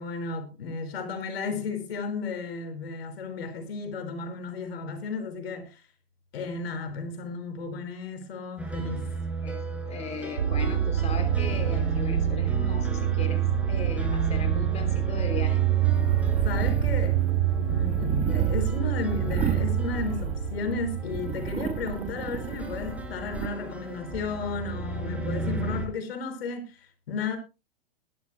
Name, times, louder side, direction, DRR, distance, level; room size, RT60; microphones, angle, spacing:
voice 1, 0.0-5.8 6.3-9.0 16.4-17.2 17.7-27.4, left 4 dB, 70° left, 5.1 m, -34 dB
sound 1, 8.6-25.9, right 1 dB, 5° right, 4.9 m, -36 dB
voice 2, 9.9-15.6, left 5 dB, 20° left, 3.1 m, -37 dB
sound 2, 10.4-22.3, right 10 dB, 85° right, 2.8 m, -26 dB
sound 3, 15.9-20.7 21.1-23.5, right 7 dB, 20° right, 1.2 m, -33 dB
21.5 x 12.5 x 2.2 m
hypercardioid pair, 120°, 31 cm